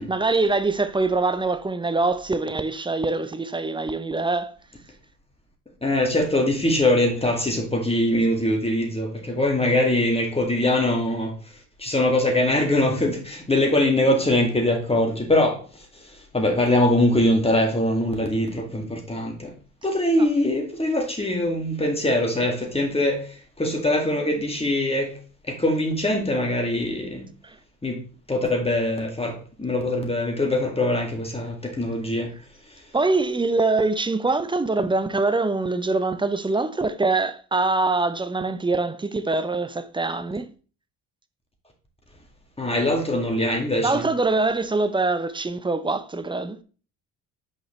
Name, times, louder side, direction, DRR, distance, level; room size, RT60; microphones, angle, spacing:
voice 1, 0.0-4.5 27.4-27.6 32.9-40.5 43.8-46.6, right 3 dB, 10° right, 0.6 m, -24 dB
voice 2, 5.8-11.3 11.8-15.6 16.3-19.5 19.8-25.1 25.5-27.2 27.8-28.0 28.3-32.3 42.6-44.0, left 1 dB, 15° left, 2.1 m, -22 dB
6.4 x 5.0 x 3.1 m
hypercardioid pair, 60°, 42 cm